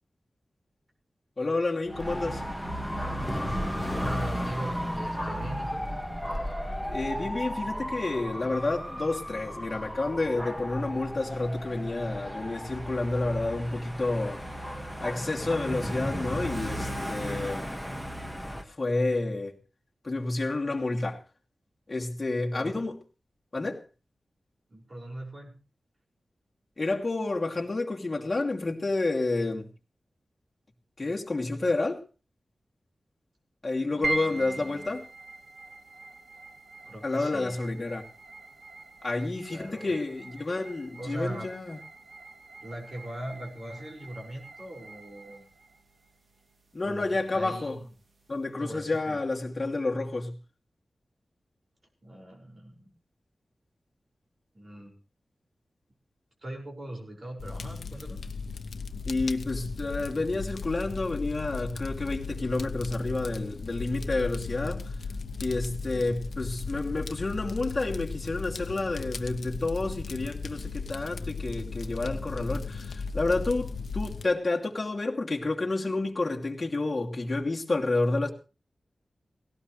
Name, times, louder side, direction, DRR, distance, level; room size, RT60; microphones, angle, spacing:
voice 1, 1.4-2.4 6.9-14.4 15.0-17.7 18.7-19.6 20.0-21.2 21.9-23.0 23.5-23.8 26.8-29.7 31.0-32.0 33.6-35.1 37.0-38.0 39.0-41.8 46.7-47.8 48.3-50.3 59.1-64.9 65.4-78.3, left 2 dB, 30° left, 2.6 m, -30 dB
Dog / Motorcycle, 1.9-18.6, equal, 5° right, 1.8 m, -34 dB
voice 2, 3.9-5.9 22.5-22.9 24.7-25.5 33.9-35.0 36.9-37.6 39.5-40.0 41.0-41.5 42.6-45.5 46.8-47.8 48.6-49.2 52.0-52.9 54.5-55.0 56.4-58.2 65.8-66.1, right 1 dB, 40° right, 5.8 m, -40 dB
sound 1, 34.0-48.5, right 3 dB, 65° right, 2.7 m, -42 dB
Fire, 57.4-74.2, left 4 dB, 80° left, 0.9 m, -36 dB
18.0 x 17.5 x 3.3 m
wide cardioid pair, 120°, 0 cm